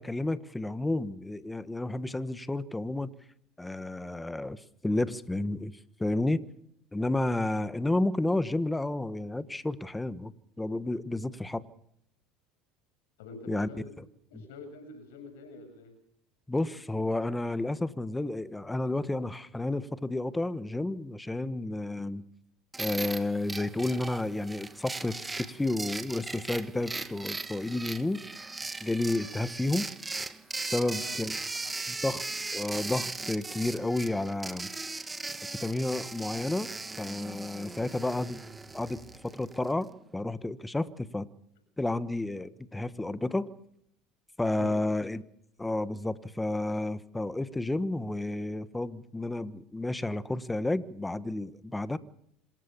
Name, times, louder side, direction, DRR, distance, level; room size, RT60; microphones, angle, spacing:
voice 1, 0.0-3.1 3.6-5.7 6.0-6.4 6.9-11.6 13.5-13.7 16.5-22.2 22.8-28.2 28.8-29.9 30.6-31.4 31.9-32.3 32.5-34.7 35.6-36.7 37.0-38.4 38.7-41.3 41.8-43.5 44.4-45.2 45.6-52.0, left 2 dB, 10° left, 1.3 m, -31 dB
voice 2, 13.2-14.0 14.3-15.9 30.8-31.1 31.6-31.7 44.6-44.7, left 4 dB, 85° left, 7.5 m, -45 dB
sound 1, 22.7-39.7, right 3 dB, 15° right, 1.8 m, -38 dB
26.5 x 15.0 x 7.1 m
supercardioid pair, 90°, 0 cm